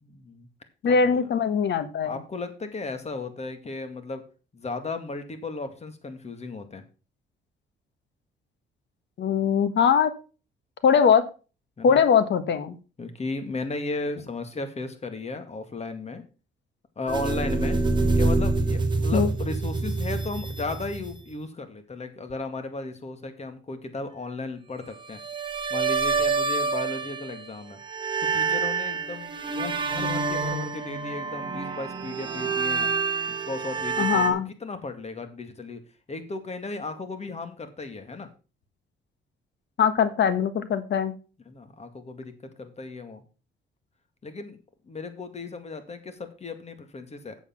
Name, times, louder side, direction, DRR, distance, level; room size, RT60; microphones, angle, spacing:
voice 1, 0.0-0.5 0.9-1.2 2.0-4.2 4.5-6.8 11.8-12.0 13.0-16.2 17.0-17.8 18.2-25.2 25.7-27.8 28.2-32.9 33.3-35.8 36.1-38.3 41.5-43.2 44.2-44.6 44.9-47.4, left 3 dB, 35° left, 9 dB, 2.1 m, -35 dB
voice 2, 0.8-2.2 9.2-10.1 10.8-11.2 11.8-12.8 19.1-19.3 34.0-34.5 39.8-41.1, left 6 dB, 65° left, 12 dB, 1.5 m, -21 dB
sound 1, 17.1-21.3 25.1-27.5 27.8-34.3, right 4 dB, 25° right, 2.2 m, -27 dB
8.2 x 7.1 x 5.8 m, 0.34 s
cardioid pair, 90°, 20 cm